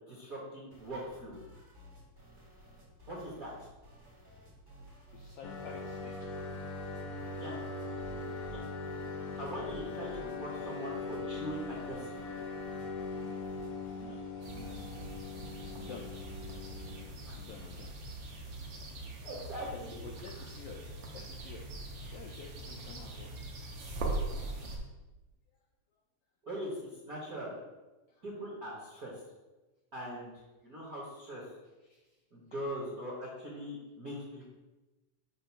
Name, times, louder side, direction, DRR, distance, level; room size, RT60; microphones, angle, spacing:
voice 1, 0.1-1.4 3.1-3.5 7.3-7.6 8.5-8.6 9.4-12.3 17.3-17.4 19.2-20.0 26.4-27.5 28.2-29.1 29.9-30.3 30.6-31.4 32.3-34.5, equal, 55° right, -6 dB, 1.0 m, -41 dB
sound 1, 0.7-14.1, right 1 dB, 25° right, 0.4 m, -55 dB
voice 2, 5.1-6.3 13.7-14.2 14.5-15.3 15.7-16.2 17.3-17.9 19.1-19.3 19.7-21.7 22.1-23.3 23.9-24.0 28.1-28.5 31.8-32.2 32.5-32.6, left 5 dB, 85° left, 0 dB, 1.4 m, -51 dB
sound 2, 5.4-17.1, left 3 dB, 70° left, 1.4 m, -40 dB
sound 3, 14.4-24.8, right 2 dB, 75° right, 1.0 m, -41 dB
7.5 x 2.5 x 5.6 m, 1.1 s
omnidirectional pair, 3.4 m